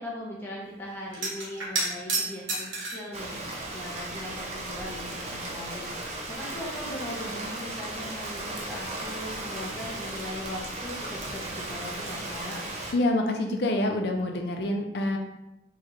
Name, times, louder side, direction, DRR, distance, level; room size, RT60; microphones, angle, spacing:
voice 1, 0.0-2.7 2.9-12.6, left 1 dB, 10° left, -5 dB, 0.8 m, -39 dB
sound 1, 1.1-3.1 4.0-4.8 5.1-5.2 6.5-6.6 6.9-7.9 11.5-11.7 12.0-12.2, right 2 dB, 90° right, 1.1 m, -32 dB
Rain, 3.1-12.9, right 2 dB, 35° right, 0.6 m, -36 dB
voice 2, 12.9-15.2, left 1 dB, 60° left, 3 dB, 0.5 m, -26 dB
4.5 x 2.4 x 3.0 m, 0.89 s
head